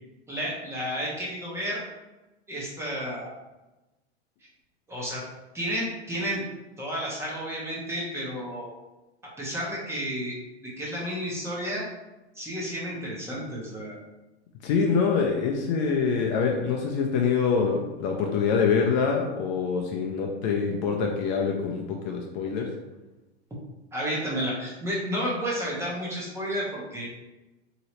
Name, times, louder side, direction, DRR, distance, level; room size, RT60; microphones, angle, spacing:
voice 1, 0.3-1.8 2.5-3.3 4.9-5.2 5.5-6.4 6.8-8.7 9.4-10.4 10.6-11.8 12.4-14.0 23.9-27.1, equal, 10° right, -5 dB, 0.7 m, -31 dB
voice 2, 14.6-22.7, left 5 dB, 40° left, 1 dB, 0.5 m, -25 dB
3.0 x 2.8 x 2.9 m, 1.1 s
hypercardioid pair, 135°, 34 cm